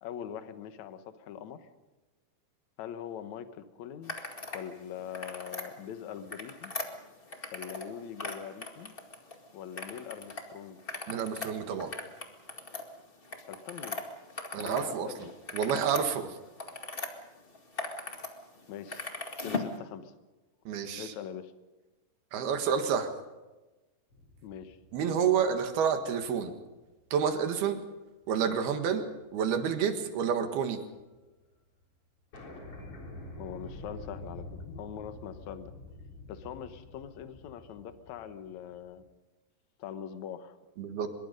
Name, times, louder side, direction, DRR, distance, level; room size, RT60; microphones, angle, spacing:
voice 1, 0.0-1.7 2.8-4.1 4.5-6.7 7.5-8.9 9.5-10.8 13.5-14.1 14.6-15.3 18.7-19.1 19.4-20.1 21.0-21.5 24.4-24.8 33.4-35.7 36.3-39.0 39.8-40.6, left 9 dB, 65° left, 10 dB, 1.9 m, -42 dB
sound 1, 4.0-4.6 5.0-5.7 6.2-9.4 9.8-10.4 10.8-14.9 15.2-17.1 17.5-18.3 18.6-19.7, left 3 dB, 80° left, 0.5 m, -39 dB
voice 2, 11.1-11.9 14.5-16.4 20.7-21.1 22.3-23.1 24.9-26.5 27.1-27.8 28.3-29.1 29.3-30.8 40.8-41.1, right 7 dB, 70° right, 7 dB, 3.5 m, -29 dB
sound 2, 24.1-26.7 27.2-27.3 28.8-29.1 29.4-30.8 31.1-31.2 31.4-31.5 31.8-31.9 32.3-39.0, left 1 dB, 35° left, 4.5 m, -47 dB
24.5 x 22.0 x 5.3 m, 1.2 s
omnidirectional pair, 4.8 m